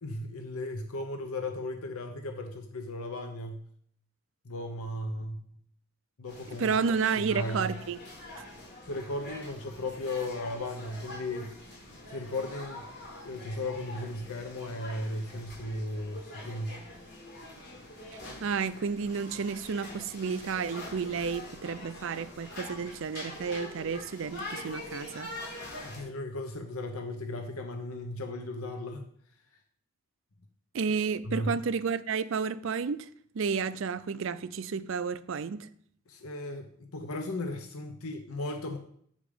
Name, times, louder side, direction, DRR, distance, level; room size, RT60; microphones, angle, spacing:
voice 1, 0.0-3.6 4.4-5.5 6.2-6.7 7.2-7.7 8.8-11.5 12.1-12.8 13.2-16.8 25.8-29.0 31.2-31.6 36.1-38.8, left 1 dB, 80° left, 0.9 m, -36 dB
sound 1, 6.3-26.0, left 1 dB, 45° left, 3.9 m, -44 dB
voice 2, 6.6-8.0 8.4-8.5 18.4-25.3 30.7-33.1 33.3-35.7, right 5 dB, 60° right, 0.4 m, -31 dB
8.6 x 5.2 x 5.0 m
head